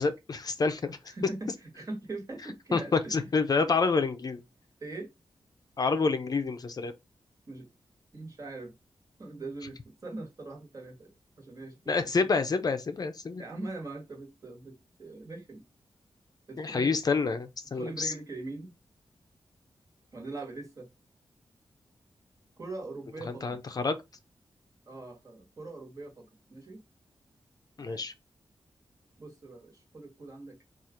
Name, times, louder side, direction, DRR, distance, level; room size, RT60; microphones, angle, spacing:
voice 1, 0.0-1.0 2.7-4.4 5.8-6.9 11.9-13.4 16.6-18.1 23.3-24.0 27.8-28.1, left 4 dB, 45° left, 0.5 m, -28 dB
voice 2, 1.1-3.2 4.8-5.1 7.5-7.7 8.1-8.7 9.2-12.2 13.4-15.6 16.5-17.0 17.7-18.7 20.1-20.9 22.6-23.6 24.9-26.8 27.8-28.0 29.2-30.6, right 2 dB, 35° right, 1.4 m, -42 dB
4.3 x 2.4 x 4.8 m
wide cardioid pair, 165°, 9 cm